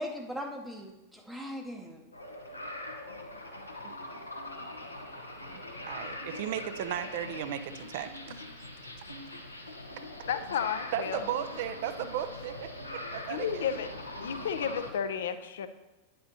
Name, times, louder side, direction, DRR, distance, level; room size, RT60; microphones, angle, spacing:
voice 1, 0.0-2.0, equal, ahead, 0 dB, 0.7 m, -39 dB
sound 1, 2.1-14.9, left 1 dB, 85° left, 0.8 m, -42 dB
voice 2, 5.5-8.7 10.9-13.6, right 10 dB, 50° right, 10 dB, 0.4 m, -36 dB
voice 3, 10.3-11.3 13.3-13.9 14.2-15.7, left 8 dB, 60° left, 11 dB, 0.5 m, -32 dB
9.4 x 7.5 x 2.8 m, 1.0 s
figure-of-eight pair, 90°, 0 cm